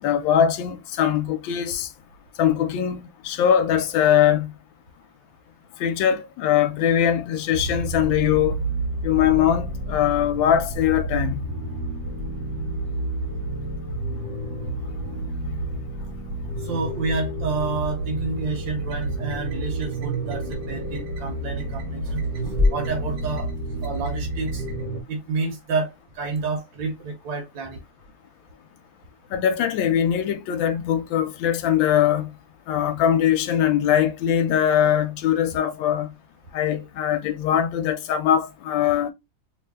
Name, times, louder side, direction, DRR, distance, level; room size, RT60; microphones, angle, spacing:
voice 1, 0.0-1.9 2.4-4.5 5.8-8.6 9.0-11.4 29.3-32.3 32.7-36.1 36.5-39.1, left 9 dB, 85° left, 1.4 m, -21 dB
sound 1, 7.5-25.0, right 2 dB, 60° right, 1.6 m, -30 dB
sound 2, 12.9-26.1, left 3 dB, 15° right, 0.9 m, -34 dB
voice 2, 16.6-22.2 22.7-23.5 23.8-24.6 25.1-27.8, right 3 dB, 80° right, 1.5 m, -29 dB
3.3 x 2.6 x 3.3 m
omnidirectional pair, 2.0 m